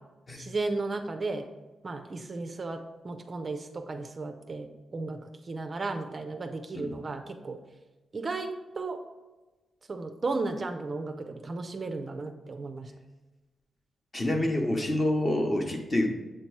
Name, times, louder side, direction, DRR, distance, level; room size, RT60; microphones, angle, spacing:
voice 1, 0.4-1.5 1.8-2.8 3.0-7.6 8.1-8.5 8.8-9.0 9.9-12.9, right 3 dB, 35° right, 6 dB, 0.4 m, -34 dB
voice 2, 14.1-16.1, left 1 dB, 25° left, 3 dB, 0.8 m, -27 dB
7.7 x 2.9 x 4.5 m, 1.1 s
wide cardioid pair, 140°, 0 cm